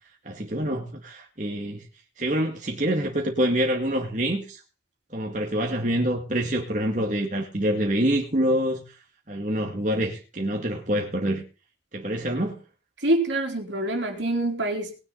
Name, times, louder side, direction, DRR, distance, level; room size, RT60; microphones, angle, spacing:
voice 1, 0.2-1.9 2.2-4.6 5.1-9.0 9.3-11.4 11.9-12.6, equal, 40° right, 2.1 m, -26 dB
voice 2, 13.0-15.0, right 1 dB, 70° right, 3.5 m, -25 dB
19.5 x 9.9 x 4.0 m
head